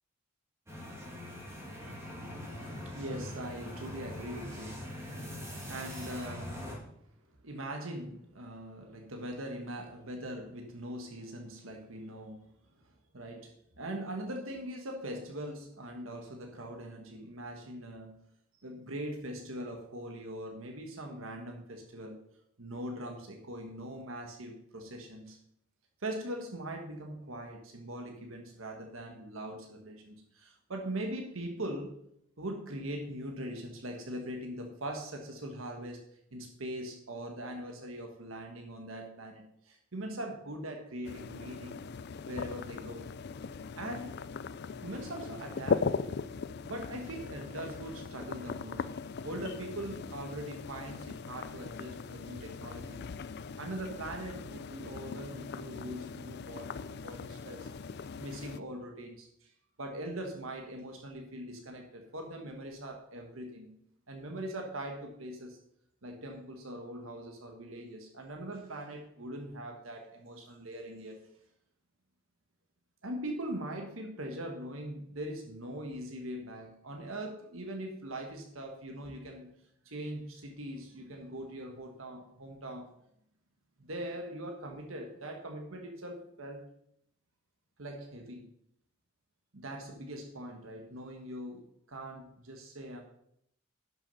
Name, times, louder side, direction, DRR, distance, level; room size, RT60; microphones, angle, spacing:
sound 1, 0.7-6.7, left 1 dB, 15° right, 2.7 m, -42 dB
voice 1, 2.5-5.4 5.7-6.6 7.4-12.5 13.1-18.2 18.6-22.2 22.6-25.4 26.0-31.9 32.4-36.0 36.3-41.9 42.2-43.1 43.8-44.1 44.8-45.9 46.6-48.9 49.2-53.0 53.6-59.5 59.8-63.7 64.1-65.6 66.0-71.2 73.0-79.5 79.8-82.9 83.8-86.6 87.8-88.5 89.5-91.6 91.9-93.0, right 1 dB, 85° right, 3 dB, 1.5 m, -41 dB
sound 2, 41.0-58.6, left 5 dB, 55° left, 0.4 m, -39 dB
11.0 x 6.3 x 5.5 m, 0.74 s
head